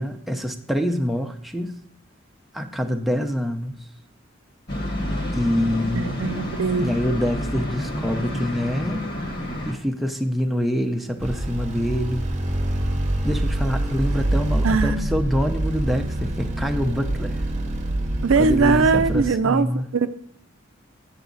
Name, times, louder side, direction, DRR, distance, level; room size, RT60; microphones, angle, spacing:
voice 1, 0.0-1.8 2.5-3.7 5.3-6.2 6.8-9.0 9.6-12.2 13.2-17.4 18.4-19.9, equal, ahead, 3 dB, 0.6 m, -25 dB
sound 1, 4.7-9.7, left 1 dB, 55° left, 1.4 m, -29 dB
voice 2, 5.9-6.9 14.6-15.1 18.2-19.7 19.9-20.1, right 4 dB, 75° right, 11 dB, 0.5 m, -20 dB
sound 2, 11.2-19.3, right 1 dB, 35° right, 0.8 m, -25 dB
8.0 x 7.1 x 3.9 m, 0.63 s
head